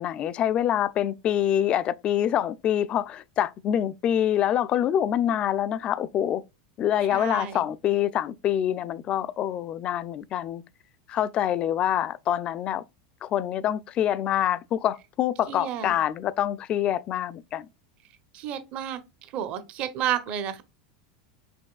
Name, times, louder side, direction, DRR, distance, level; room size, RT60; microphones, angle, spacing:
voice 1, 0.0-6.4 6.8-10.6 11.1-12.8 13.2-17.7, left 10 dB, 40° left, 0.3 m, -26 dB
voice 2, 7.1-7.6 15.5-15.9 18.3-19.0 19.3-20.6, right 10 dB, 50° right, 0.7 m, -31 dB
5.1 x 3.1 x 2.3 m
hypercardioid pair, 105°, 3 cm